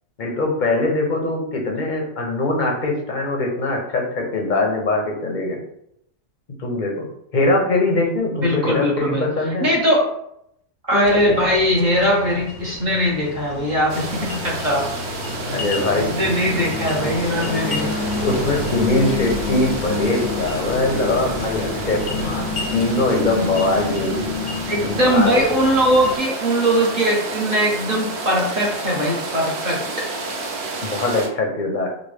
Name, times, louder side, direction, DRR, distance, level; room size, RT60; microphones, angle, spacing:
voice 1, 0.2-5.6 6.6-7.1 7.3-9.7 15.5-16.1 18.2-22.5 22.7-24.5 24.8-25.4 30.8-31.9, left 2 dB, 45° left, 1 dB, 0.8 m, -22 dB
voice 2, 8.3-9.3 9.6-10.1 10.9-14.9 15.4-15.6 15.9-17.9 24.7-30.1, equal, 40° right, -3 dB, 1.0 m, -20 dB
sound 1, 11.0-26.2, left 4 dB, 70° left, 1.0 m, -29 dB
sound 2, 13.9-31.3, right 3 dB, 60° right, 0.9 m, -31 dB
5.0 x 2.2 x 3.3 m, 0.75 s
omnidirectional pair, 1.3 m